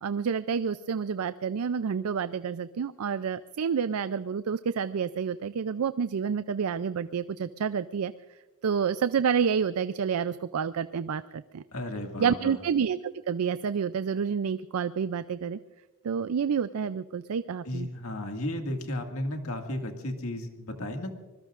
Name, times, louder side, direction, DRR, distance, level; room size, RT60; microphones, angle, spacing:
voice 1, 0.0-8.1 8.6-11.6 12.2-15.6 16.0-17.9, right 6 dB, 75° right, 14 dB, 0.4 m, -29 dB
voice 2, 11.7-12.6 17.7-21.1, left 1 dB, 70° left, 4 dB, 2.0 m, -34 dB
25.5 x 20.5 x 2.5 m, 1.2 s
head